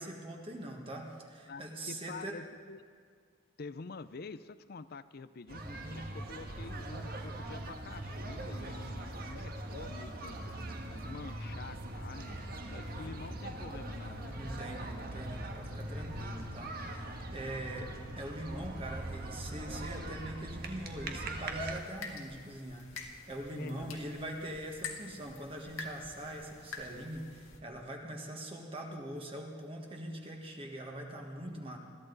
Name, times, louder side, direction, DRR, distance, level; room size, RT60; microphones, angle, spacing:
voice 1, 0.0-2.3 5.6-6.0 14.4-31.8, right 1 dB, 30° right, 1 dB, 1.6 m, -43 dB
voice 2, 1.5-2.8 3.6-10.4 10.9-12.4 12.7-14.4 15.7-16.3 17.1-17.2 23.6-24.0, left 4 dB, 50° left, 14 dB, 0.5 m, -48 dB
sound 1, 5.5-21.8, right 1 dB, 50° right, 1.4 m, -41 dB
sound 2, 21.7-27.6, left 4 dB, 85° left, 1.9 m, -47 dB
21.5 x 14.0 x 4.0 m, 2.1 s
head